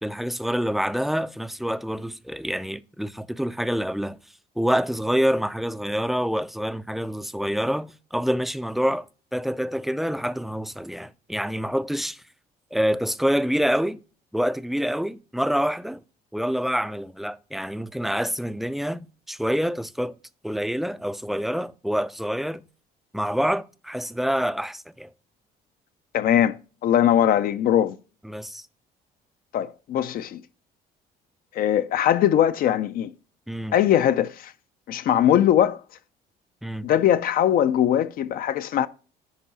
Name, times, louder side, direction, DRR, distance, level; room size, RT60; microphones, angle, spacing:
voice 1, 0.0-4.2 4.6-12.2 12.7-14.0 14.3-16.0 16.3-20.2 20.4-22.6 23.1-25.1 28.2-28.7 33.5-33.8 36.6-36.9, equal, ahead, 0.3 m, -26 dB
voice 2, 26.1-26.6 26.8-28.0 29.5-30.4 31.5-33.1 33.7-34.5 34.9-35.8 36.8-38.9, left 10 dB, 60° left, 0.5 m, -21 dB
10.0 x 4.6 x 4.0 m
cardioid pair, 110°, 17 cm